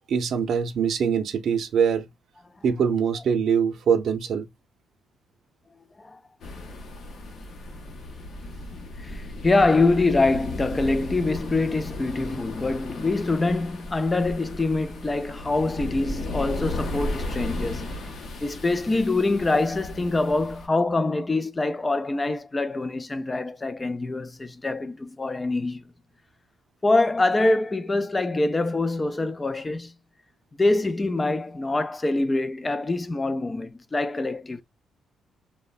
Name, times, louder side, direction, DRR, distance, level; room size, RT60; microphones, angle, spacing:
voice 1, 0.1-2.1 2.6-4.5, right 7 dB, 60° right, 0.5 m, -23 dB
sound 1, 6.4-20.7, left 1 dB, 55° left, 0.7 m, -35 dB
voice 2, 9.0-17.9 18.4-25.9 26.8-29.9 30.6-34.6, left 2 dB, 20° left, 0.3 m, -24 dB
3.0 x 2.1 x 2.2 m
cardioid pair, 130°, 0 cm